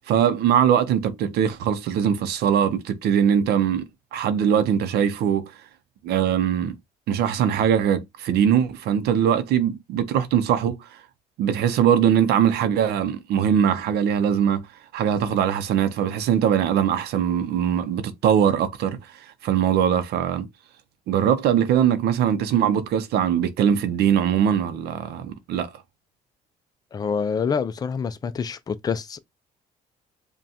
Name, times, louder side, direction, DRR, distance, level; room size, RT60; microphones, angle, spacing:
voice 1, 0.1-3.9 4.1-5.6 6.0-6.8 7.1-11.0 11.4-14.7 14.9-20.5 21.1-25.7, right 9 dB, 75° right, 0.6 m, -21 dB
voice 2, 26.9-29.2, left 6 dB, 25° left, 0.4 m, -26 dB
5.2 x 2.2 x 2.8 m
cardioid pair, 110°, 17 cm